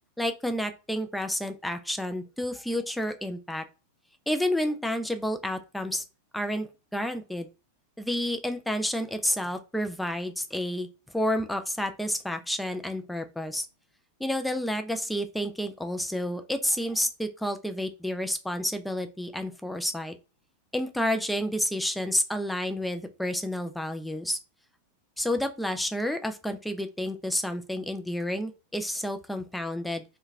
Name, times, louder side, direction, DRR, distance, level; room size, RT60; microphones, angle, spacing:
voice 1, 0.2-3.6 4.3-6.0 6.3-7.5 8.0-10.9 11.1-13.7 14.2-20.1 20.7-24.4 25.2-30.0, left 1 dB, 5° left, 7 dB, 0.4 m, -30 dB
2.8 x 2.2 x 2.4 m, 0.31 s
figure-of-eight pair, 90°, 0 cm